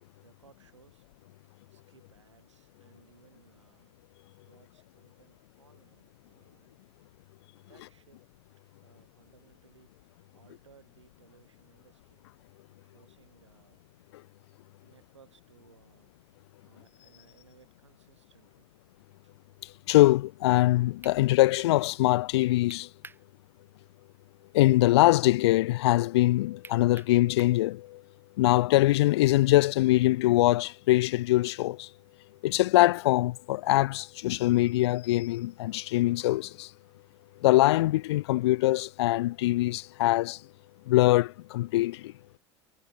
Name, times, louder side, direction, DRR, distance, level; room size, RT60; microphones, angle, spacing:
voice 1, 0.2-1.1 1.4-4.0 4.5-7.0 7.6-8.2 8.8-12.3 12.8-13.8 14.8-16.2 16.6-18.7 19.2-19.3, right 6 dB, 80° right, 6.7 m, -62 dB
voice 2, 19.9-22.9 24.5-28.0 28.4-31.9 32.4-36.7 37.4-40.4 40.9-42.1, left 17 dB, 65° left, 0.4 m, -23 dB
sound 1, 21.0-21.2 22.7-23.3 23.6-23.7 26.6-27.6, right 3 dB, 15° right, 5.5 m, -48 dB
figure-of-eight pair, 70°, 15 cm